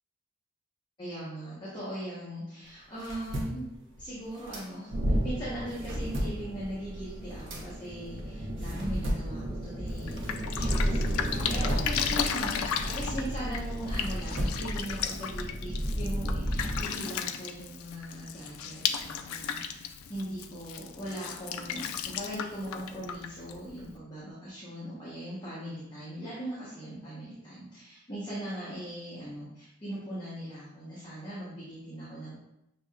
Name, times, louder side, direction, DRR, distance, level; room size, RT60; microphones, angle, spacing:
voice 1, 1.0-3.7 4.0-32.4, right 1 dB, 20° left, -9 dB, 1.0 m, -40 dB
sound 1, 2.6-5.2 5.5-10.8 11.2-15.0, equal, 60° right, 0.9 m, -38 dB
sound 2, 4.9-16.9, equal, 80° right, 1.1 m, -33 dB
Drip, 9.9-24.0, left 8 dB, 85° left, 0.3 m, -35 dB
6.2 x 2.8 x 2.3 m, 0.83 s
head